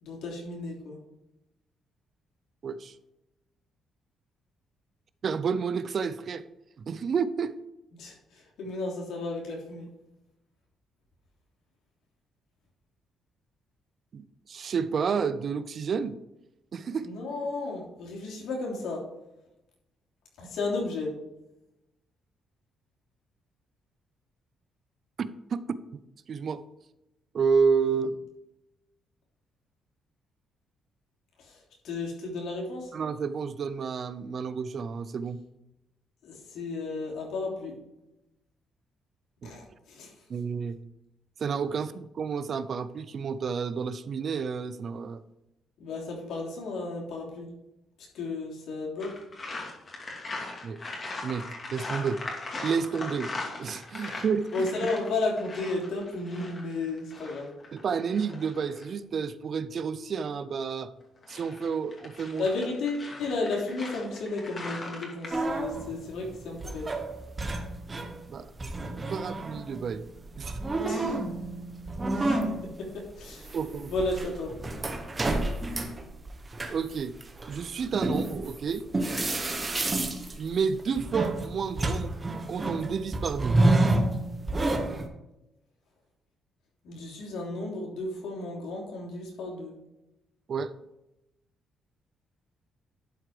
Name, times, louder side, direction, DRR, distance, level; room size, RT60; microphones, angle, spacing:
voice 1, 0.0-1.0 8.0-9.9 17.0-19.0 20.4-21.1 31.4-32.9 36.2-37.7 39.4-40.1 45.8-47.5 48.1-49.1 54.5-57.5 62.4-66.9 70.8-71.2 72.1-73.6 73.9-74.5 86.8-89.7, left 3 dB, 80° left, -2 dB, 3.3 m, -33 dB
voice 2, 2.6-3.0 5.2-6.4 6.8-7.6 14.1-16.2 16.7-17.1 25.2-26.0 26.3-26.6 27.3-28.2 32.9-35.4 39.4-39.5 40.3-40.8 41.4-45.2 50.6-50.8 51.2-52.2 52.6-53.3 53.6-54.7 57.7-60.9 61.3-62.5 68.3-70.0 70.4-70.6 73.5-73.9 76.7-77.1 77.5-78.9 80.4-82.1 82.5-83.6 90.5-90.7, right 6 dB, 50° right, 14 dB, 0.5 m, -30 dB
sound 1, 49.0-58.9 61.0-65.4, left 2 dB, 40° left, 2.6 m, -40 dB
sound 2, 65.3-68.3 68.6-85.1, right 2 dB, 25° right, 1.3 m, -29 dB
11.5 x 4.7 x 4.9 m, 0.91 s
cardioid pair, 90°, 0 cm